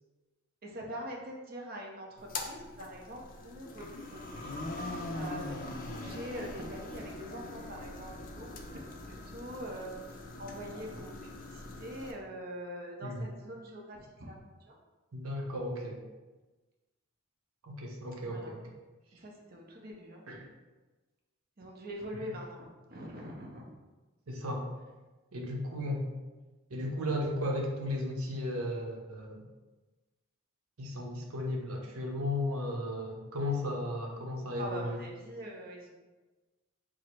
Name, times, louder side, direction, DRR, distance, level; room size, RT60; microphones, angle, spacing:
voice 1, 0.6-4.6 5.1-8.1 8.4-9.9 10.4-14.4 14.7-14.8 18.3-18.5 19.2-20.2 21.6-23.6 34.6-35.9, equal, 45° right, 0 dB, 0.6 m, -43 dB
sound 1, 2.2-12.1, left 2 dB, 40° left, 0.4 m, -42 dB
voice 2, 15.1-16.0 17.6-18.6 20.3-20.5 22.1-22.3 24.3-24.6 25.3-26.0 26.7-29.4 30.8-35.0, left 1 dB, 85° right, 1 dB, 0.8 m, -35 dB
4.7 x 2.0 x 4.4 m, 1.2 s
head